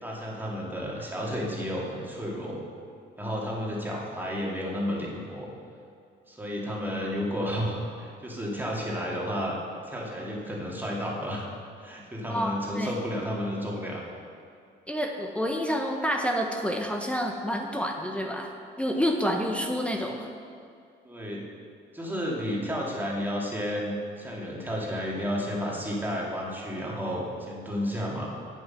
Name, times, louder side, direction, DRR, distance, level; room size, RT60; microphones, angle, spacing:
voice 1, 0.0-2.6 3.2-5.5 6.3-9.5 9.9-11.5 11.8-14.0 21.0-21.4 21.9-28.3, equal, 10° right, -4 dB, 2.4 m, -32 dB
voice 2, 12.3-13.0 14.9-20.3, equal, 5° left, 2 dB, 0.9 m, -29 dB
8.8 x 7.9 x 5.8 m, 2.4 s
cardioid pair, 90°, 20 cm